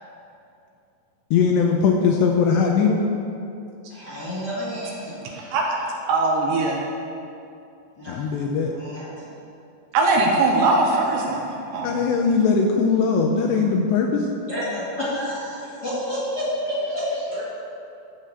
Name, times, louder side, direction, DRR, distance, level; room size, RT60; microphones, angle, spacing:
voice 1, 1.3-3.0 8.1-8.7 11.8-14.3, left 5 dB, 80° left, 2 dB, 2.6 m, -20 dB
voice 2, 3.9-5.2 8.0-8.2 8.7-9.3 14.5-15.6 15.8-17.4, equal, 40° left, -10 dB, 1.5 m, -29 dB
voice 3, 5.0-5.9 8.1-8.3 15.6-15.8 16.6-17.4, right 1 dB, 55° left, -9 dB, 1.4 m, -49 dB
voice 4, 6.1-6.9 9.9-12.0, right 2 dB, 75° right, 0 dB, 2.8 m, -21 dB
14.0 x 5.0 x 6.8 m, 2.6 s
omnidirectional pair, 5.6 m